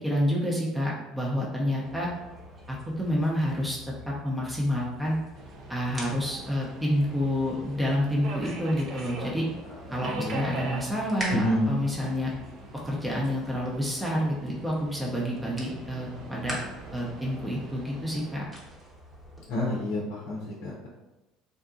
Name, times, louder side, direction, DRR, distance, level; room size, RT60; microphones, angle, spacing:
voice 1, 0.0-2.1 2.7-3.8 4.1-5.2 5.7-9.5 9.9-12.3 12.8-16.6 16.9-18.4, equal, 10° right, -4 dB, 0.7 m, -28 dB
sound 1, 1.8-19.4, equal, 30° right, 1.1 m, -44 dB
Subway metro underground, 5.3-18.4, right 2 dB, 55° right, 0.5 m, -43 dB
voice 2, 11.3-11.7 19.5-20.9, left 1 dB, 65° left, -4 dB, 0.6 m, -28 dB
3.7 x 2.2 x 2.6 m, 1.1 s
hypercardioid pair, 65°, 0 cm